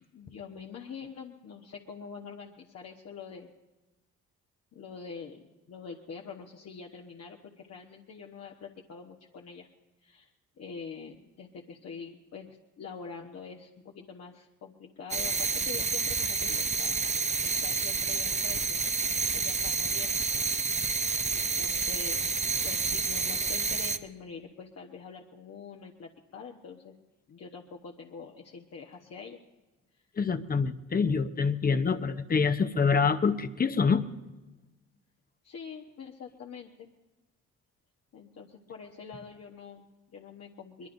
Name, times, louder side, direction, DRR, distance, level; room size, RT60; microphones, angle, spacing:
voice 1, 0.0-3.5 4.7-9.7 10.0-10.3 10.6-12.5 12.8-17.1 17.4-20.2 21.3-26.9 27.3-29.4 35.4-36.9 38.1-40.9, left 5 dB, 55° left, 0 dB, 1.2 m, -45 dB
sound 1, 15.1-24.0, right 5 dB, 25° right, 0.7 m, -29 dB
voice 2, 30.2-34.0, left 5 dB, 30° left, 10 dB, 0.8 m, -26 dB
23.0 x 21.0 x 2.7 m, 1.1 s
cardioid pair, 90°, 30 cm